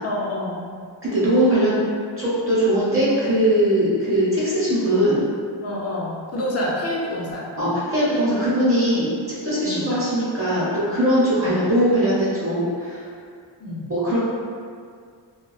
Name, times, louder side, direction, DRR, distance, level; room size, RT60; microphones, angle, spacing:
voice 1, 0.0-0.7 5.6-7.5 9.6-9.9 11.4-11.5 13.6-13.9, left 1 dB, 35° left, -4 dB, 0.5 m, -28 dB
voice 2, 1.0-1.8 2.2-5.2 7.6-13.0 13.9-14.2, right 1 dB, 30° right, -10 dB, 0.8 m, -20 dB
2.3 x 2.3 x 2.4 m, 2.1 s
wide cardioid pair, 70°, 46 cm